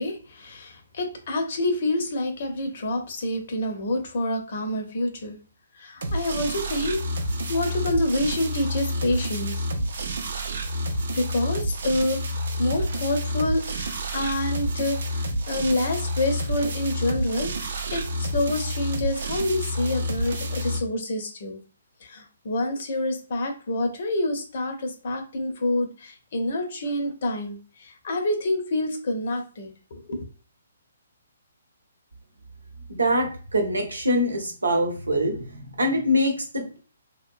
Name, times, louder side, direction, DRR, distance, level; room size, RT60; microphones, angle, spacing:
voice 1, 0.0-5.4 5.8-7.0 7.5-9.6 11.1-21.6 22.0-30.2, left 1 dB, 55° left, 5 dB, 0.7 m, -27 dB
sound 1, 6.0-20.8, equal, 65° right, 0.5 m, -29 dB
voice 2, 32.9-36.8, equal, 90° right, 3 dB, 0.8 m, -24 dB
2.9 x 2.1 x 2.5 m, 0.38 s
hypercardioid pair, 140°, 0 cm